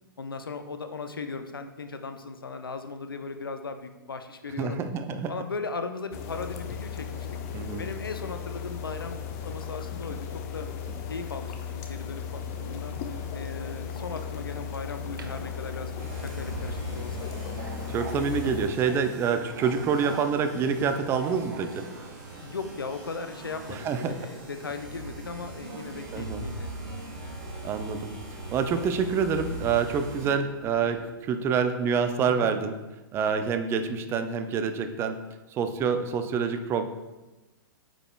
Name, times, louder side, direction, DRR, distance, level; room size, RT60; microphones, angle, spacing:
voice 1, 0.2-4.8 5.3-7.3 7.8-9.2 9.4-10.7 11.1-12.9 13.3-15.9 16.4-17.3 22.4-26.7 32.3-32.5, left 4 dB, 75° left, 8 dB, 0.6 m, -37 dB
voice 2, 4.6-5.3 7.5-7.8 17.9-21.9 23.7-24.3 26.1-26.4 27.6-28.1 28.5-32.8 33.1-35.2 35.5-36.9, right 6 dB, 20° right, 8 dB, 0.4 m, -27 dB
sound 1, 6.1-18.7, left 7 dB, 40° left, 0.7 m, -36 dB
Subway metro underground, 12.4-31.1, right 5 dB, 70° right, 0.5 m, -47 dB
sound 2, 16.0-30.3, right 1 dB, 45° right, 1.6 m, -41 dB
8.8 x 4.8 x 2.2 m, 1.1 s
figure-of-eight pair, 110°, 12 cm